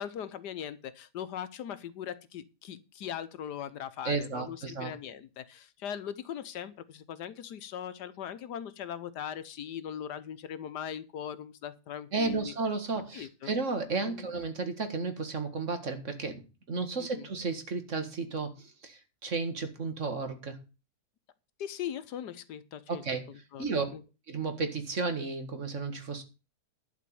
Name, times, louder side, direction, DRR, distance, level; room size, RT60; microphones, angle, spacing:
voice 1, 0.0-12.5 13.1-13.5 14.0-14.3 17.0-17.3 21.6-23.6 23.9-24.0, left 9 dB, 80° left, 14 dB, 1.5 m, -40 dB
voice 2, 4.0-4.9 12.1-16.4 16.7-20.6 22.9-23.3 23.6-23.9 24.3-26.2, right 4 dB, 45° right, 7 dB, 2.0 m, -33 dB
11.5 x 5.1 x 8.6 m, 0.31 s
omnidirectional pair, 1.8 m